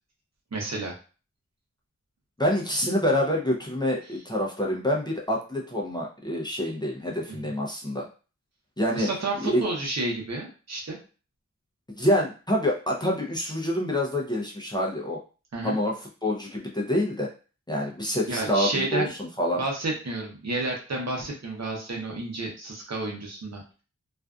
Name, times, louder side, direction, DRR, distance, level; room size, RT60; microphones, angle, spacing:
voice 1, 0.5-1.0 7.3-7.4 8.9-11.0 15.5-15.8 18.3-19.1 19.5-23.8, right 2 dB, 60° right, -1 dB, 0.8 m, -31 dB
voice 2, 2.4-8.0 8.8-9.1 9.4-9.6 11.9-15.2 15.6-16.0 16.2-17.3 17.7-19.1 19.4-19.6, left 1 dB, 15° left, -2 dB, 0.5 m, -26 dB
2.5 x 2.3 x 2.3 m, 0.35 s
wide cardioid pair, 70°, 30 cm